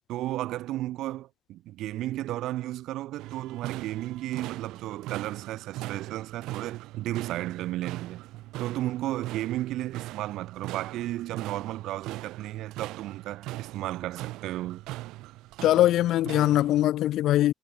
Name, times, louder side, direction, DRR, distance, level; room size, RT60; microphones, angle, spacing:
voice 1, 0.1-8.2 8.6-14.8, right 15 dB, 60° right, 0.8 m, -33 dB
sound 1, 3.2-16.8, right 18 dB, 80° right, 1.5 m, -40 dB
voice 2, 15.6-17.5, left 14 dB, 55° left, 0.6 m, -22 dB
cardioid pair, 175°, 0 cm